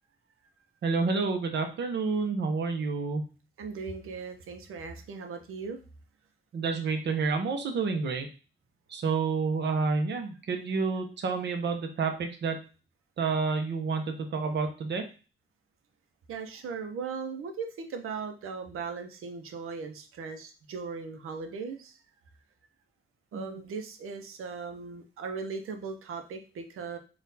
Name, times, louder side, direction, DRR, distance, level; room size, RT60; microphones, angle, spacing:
voice 1, 0.8-3.2 6.5-8.3 8.9-12.6 13.2-15.0 23.3-23.6, right 4 dB, 55° right, 5 dB, 0.9 m, -29 dB
voice 2, 3.6-5.8 16.3-21.9 23.3-27.0, right 5 dB, 85° right, 5 dB, 0.8 m, -38 dB
4.2 x 2.5 x 4.0 m, 0.34 s
wide cardioid pair, 150°, 21 cm